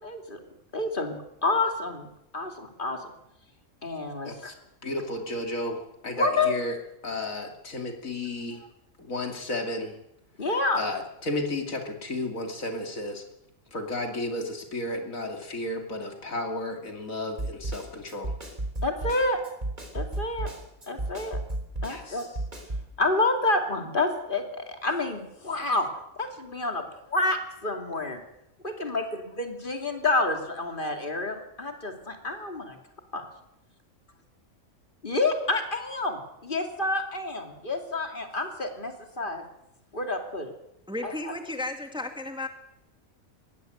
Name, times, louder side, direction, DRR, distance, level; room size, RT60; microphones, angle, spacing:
voice 1, 0.0-0.4 0.7-2.1 2.3-3.0 3.8-4.5 6.2-6.5 10.4-10.8 18.8-19.4 19.9-20.5 20.9-21.4 21.8-22.3 23.0-25.9 26.2-28.2 28.6-32.8 33.1-33.2 35.0-39.4 39.9-40.5 41.0-41.3, left 2 dB, 35° left, 5 dB, 2.9 m, -28 dB
voice 2, 4.2-4.5 4.8-6.8 7.0-8.6 9.0-10.0 10.8-13.2 13.7-18.3 21.9-22.3, left 2 dB, 75° left, 4 dB, 3.1 m, -33 dB
Snare drum, 17.4-22.9, right 2 dB, 35° right, 3.9 m, -33 dB
voice 3, 40.9-42.5, left 2 dB, 5° right, 5 dB, 1.8 m, -34 dB
20.5 x 16.5 x 8.0 m, 0.83 s
omnidirectional pair, 1.4 m